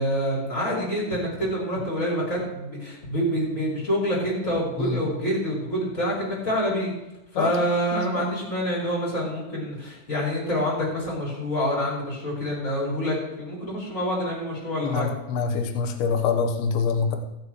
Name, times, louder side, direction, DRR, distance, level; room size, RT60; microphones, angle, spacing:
voice 1, 0.0-6.9 7.3-15.1, equal, 15° left, -5 dB, 5.3 m, -27 dB
voice 2, 7.9-8.2 14.8-17.2, left 5 dB, 75° left, 4 dB, 2.8 m, -25 dB
22.5 x 7.5 x 3.1 m, 0.95 s
omnidirectional pair, 4.8 m